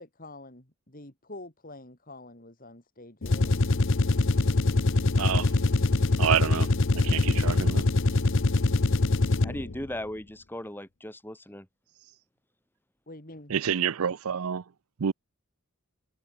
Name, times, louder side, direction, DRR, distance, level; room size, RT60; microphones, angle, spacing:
voice 1, 0.0-3.7 13.1-13.5, left 2 dB, 40° left, 4.1 m, -46 dB
sound 1, 3.2-9.8, left 3 dB, 60° left, 0.9 m, -23 dB
voice 2, 5.2-5.5 6.2-6.7 6.9-7.9 13.5-14.6 15.0-15.1, right 8 dB, 75° right, 0.5 m, -28 dB
voice 3, 9.4-11.7, left 1 dB, 10° left, 5.0 m, -37 dB
head